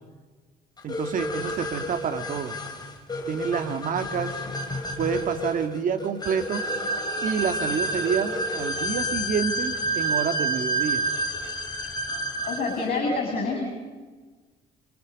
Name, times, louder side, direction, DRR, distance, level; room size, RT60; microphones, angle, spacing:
voice 1, 0.8-2.6 3.3-4.4 5.0-6.6 7.2-11.0, right 7 dB, 50° right, 7 dB, 2.3 m, -28 dB
sound 1, 0.9-12.8, right 1 dB, 25° left, 4.4 m, -29 dB
voice 2, 12.5-13.6, left 3 dB, 55° left, 1 dB, 7.8 m, -27 dB
30.0 x 27.0 x 5.5 m, 1.4 s
cardioid pair, 110°, 17 cm